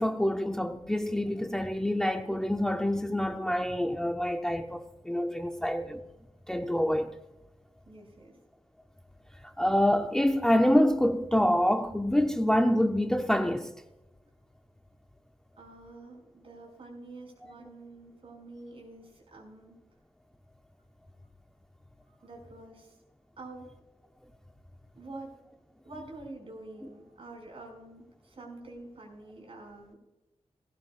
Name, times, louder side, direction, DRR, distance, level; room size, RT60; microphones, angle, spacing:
voice 1, 0.0-6.0 6.5-7.2 9.4-13.7, left 1 dB, 5° left, 0.7 m, -26 dB
voice 2, 7.9-8.4 15.6-19.8 22.2-22.9 23.4-23.7 24.9-25.3 25.8-30.0, right 2 dB, 55° right, 5.9 m, -47 dB
19.0 x 18.5 x 2.5 m
wide cardioid pair, 140°, 11 cm